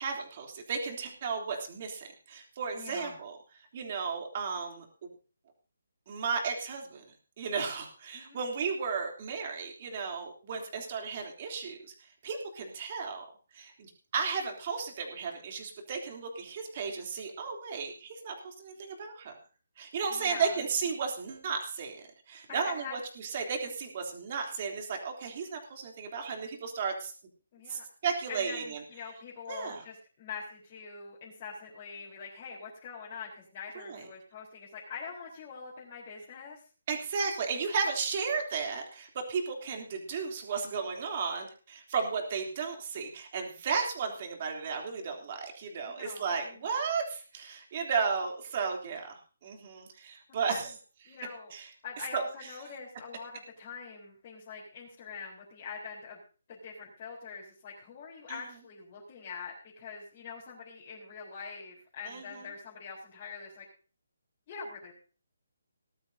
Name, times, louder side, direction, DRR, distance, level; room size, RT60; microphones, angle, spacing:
voice 1, 0.0-3.4 3.7-4.8 6.1-7.0 7.4-11.8 12.2-13.2 13.5-19.3 19.8-27.1 27.7-28.8 29.5-29.8 33.7-34.0 36.9-49.1 49.4-50.7 51.1-51.2 51.5-51.7 52.1-52.2 58.3-58.4 62.1-62.2, right 5 dB, 35° right, 2 dB, 3.2 m, -34 dB
voice 2, 2.7-3.2 8.1-8.4 20.1-20.6 22.5-22.9 27.5-27.8 28.3-36.6 45.8-46.7 50.5-50.7 51.0-51.5 51.8-56.2 56.5-63.7 64.5-64.9, left 5 dB, 30° left, -6 dB, 4.1 m, -44 dB
19.0 x 12.0 x 2.8 m, 0.37 s
hypercardioid pair, 165°, 0 cm